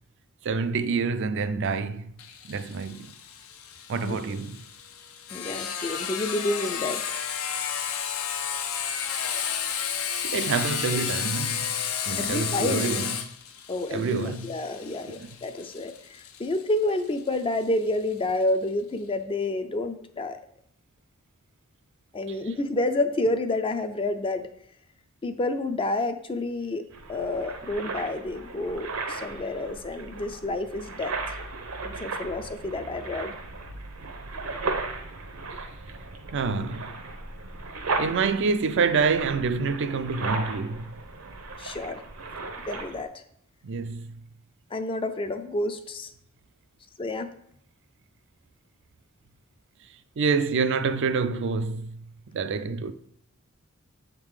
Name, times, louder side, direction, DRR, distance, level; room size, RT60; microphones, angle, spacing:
voice 1, 0.4-2.1 2.5-3.1 3.9-4.6 10.3-11.7 12.1-13.3 13.9-14.5 15.1-15.3 22.3-22.4 36.3-36.9 38.0-40.9 43.6-44.2 50.2-52.0 52.3-52.9, right 4 dB, 55° right, 0.4 m, -27 dB
Sawing, 2.2-17.6, left 8 dB, 75° left, 0.7 m, -32 dB
voice 2, 5.3-7.2 12.2-12.9 13.7-20.4 22.1-24.5 25.2-31.3 31.8-33.3 41.6-42.0 42.7-43.1 44.7-46.1 47.0-47.3, left 2 dB, 25° left, 0.4 m, -29 dB
sound 1, 26.9-43.0, right 3 dB, 75° right, 0.8 m, -36 dB
7.9 x 3.7 x 4.8 m
head